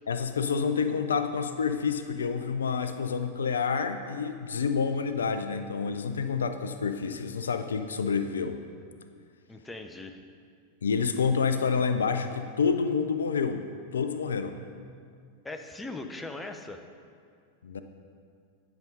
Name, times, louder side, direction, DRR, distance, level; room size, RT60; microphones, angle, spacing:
voice 1, 0.1-8.6 10.8-13.7 13.9-14.6 17.6-17.8, left 5 dB, 70° left, 9 dB, 0.4 m, -28 dB
voice 2, 9.5-10.2 15.4-16.8, left 2 dB, 10° left, 6 dB, 0.5 m, -39 dB
10.5 x 5.3 x 3.9 m, 2.2 s
figure-of-eight pair, 90°, 0 cm